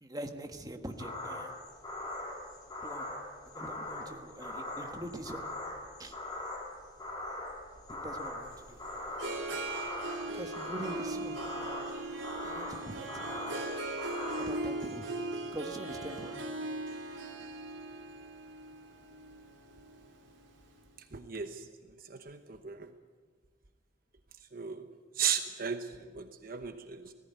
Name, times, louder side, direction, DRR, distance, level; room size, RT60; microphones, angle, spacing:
voice 1, 0.0-1.5 2.8-3.2 3.5-5.5 6.0-6.2 7.9-8.8 10.3-11.4 12.4-13.6 14.4-15.1 15.5-16.4, right 1 dB, 20° right, 5 dB, 1.4 m, -43 dB
sound 1, 0.9-14.5, left 1 dB, 20° left, 3.2 m, -41 dB
Harp, 8.5-20.7, right 2 dB, 90° right, 3.3 m, -39 dB
voice 2, 21.1-21.6 22.1-22.9 24.5-24.9 25.2-27.1, right 7 dB, 50° right, 8 dB, 1.0 m, -36 dB
18.0 x 15.0 x 9.5 m, 1.5 s
head